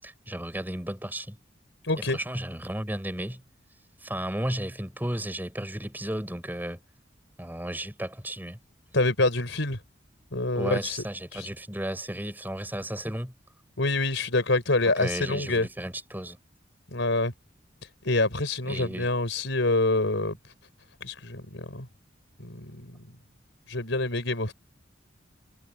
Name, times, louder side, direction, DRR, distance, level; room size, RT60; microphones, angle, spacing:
voice 1, 0.0-1.4 2.0-3.4 4.0-6.8 7.4-8.6 10.5-13.3 14.8-16.4 18.7-19.1, right 1 dB, 10° right, 6.0 m, -34 dB
voice 2, 1.8-2.2 8.9-9.8 10.3-11.0 11.3-11.5 13.8-15.7 16.9-17.3 18.0-20.4 21.0-21.9 22.4-23.0 23.7-24.5, left 2 dB, 75° left, 4.8 m, -26 dB
head